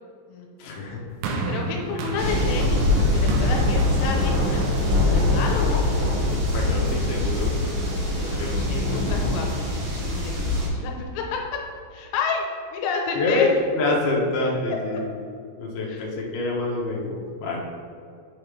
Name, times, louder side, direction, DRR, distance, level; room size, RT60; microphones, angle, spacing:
voice 1, 0.6-1.0 6.5-7.8 8.4-9.3 13.2-15.0 15.6-17.6, left 2 dB, 70° left, -2 dB, 2.6 m, -26 dB
sound 1, 1.2-5.6 6.4-6.5, right 3 dB, 80° right, 2.5 m, -31 dB
voice 2, 1.5-4.6 4.9-5.8 8.2-11.4 11.9-12.4 12.7-13.5 15.8-16.1, left 5 dB, 90° left, 1 dB, 3.0 m, -30 dB
sound 2, 2.2-10.7, left 2 dB, 55° right, 1.6 m, -23 dB
8.7 x 3.1 x 5.0 m, 2.3 s
omnidirectional pair, 5.2 m